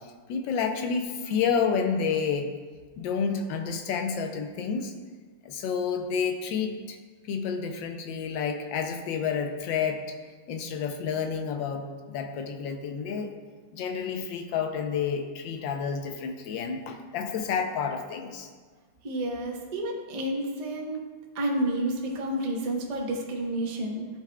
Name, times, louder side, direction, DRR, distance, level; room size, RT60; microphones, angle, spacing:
voice 1, 0.0-2.5 3.0-4.9 5.4-7.0 7.3-10.0 10.5-13.3 13.7-18.5, left 6 dB, 75° left, 5 dB, 1.4 m, -30 dB
voice 2, 19.0-21.0 21.3-24.1, right 1 dB, 60° right, 0 dB, 0.4 m, -30 dB
13.0 x 4.8 x 2.2 m, 1.5 s
omnidirectional pair, 2.1 m